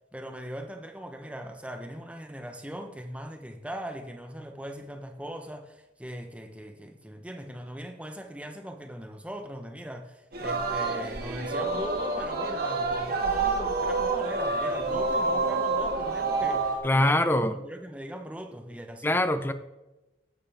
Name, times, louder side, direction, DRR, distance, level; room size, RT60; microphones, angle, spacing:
voice 1, 0.1-19.2, equal, 5° right, 1.0 m, -40 dB
Singing, 10.3-16.8, right 3 dB, 55° right, 2.0 m, -28 dB
voice 2, 16.8-17.6 19.0-19.5, left 1 dB, 10° left, 0.6 m, -23 dB
14.0 x 11.0 x 3.6 m
head